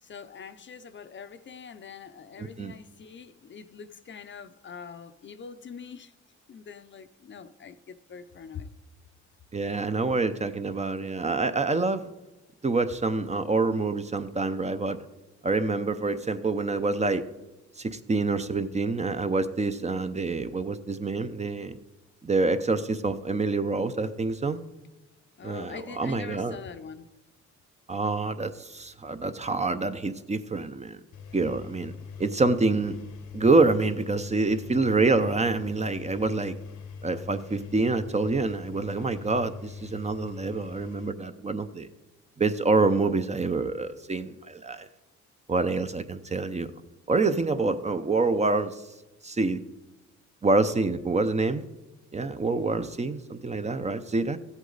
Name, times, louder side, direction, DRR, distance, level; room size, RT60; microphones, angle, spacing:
voice 1, 0.0-6.1 6.5-8.7 25.4-27.1, left 6 dB, 40° left, 0.6 m, -44 dB
voice 2, 2.4-2.7 9.5-12.1 12.6-15.0 15.4-17.3 17.8-21.8 22.2-24.6 25.4-26.6 27.9-31.0 31.3-31.9 32.2-32.9 33.3-36.6 37.0-41.9 42.4-44.9 45.5-46.7 47.1-48.9 49.2-49.6 50.4-51.6 52.1-54.4, right 3 dB, 25° right, 0.6 m, -26 dB
Engine, 31.1-41.1, left 5 dB, 75° left, 1.0 m, -42 dB
15.0 x 8.1 x 4.0 m
cardioid pair, 90°, 30 cm